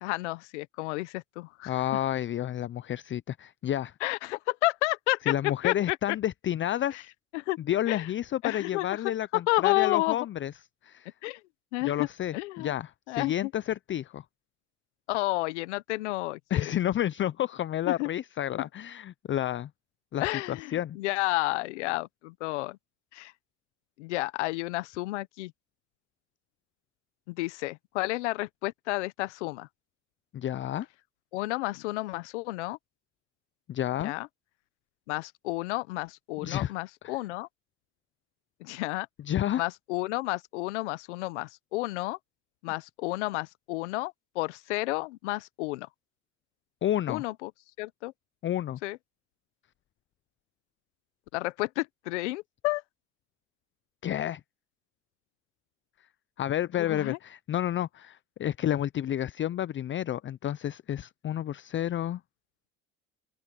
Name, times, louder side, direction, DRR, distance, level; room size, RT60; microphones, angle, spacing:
voice 1, 0.0-1.7 4.0-6.0 7.3-7.6 7.9-8.1 8.4-9.0 9.3-10.2 11.2-11.4 11.7-12.1 12.3-12.7 13.1-13.5 15.1-16.6 17.9-18.1 20.2-22.8 23.1-23.3 24.0-25.5 27.3-29.7 31.3-32.8 34.0-34.3 35.1-37.5 38.6-39.1 39.6-42.2 42.6-45.9 47.1-47.5 47.8-48.1 48.8-49.0 51.3-52.8 56.8-57.2, left 20 dB, 90° left, 1.1 m, -31 dB
voice 2, 1.7-3.9 5.2-7.1 7.7-10.5 10.8-11.1 11.8-14.2 16.5-19.7 20.1-21.0 30.3-30.9 33.7-34.1 36.4-36.7 37.0-37.2 39.3-39.6 46.8-47.2 48.4-48.8 54.0-54.4 56.4-62.2, left 11 dB, 35° left, 0.6 m, -30 dB
open air
supercardioid pair, 80°, 34 cm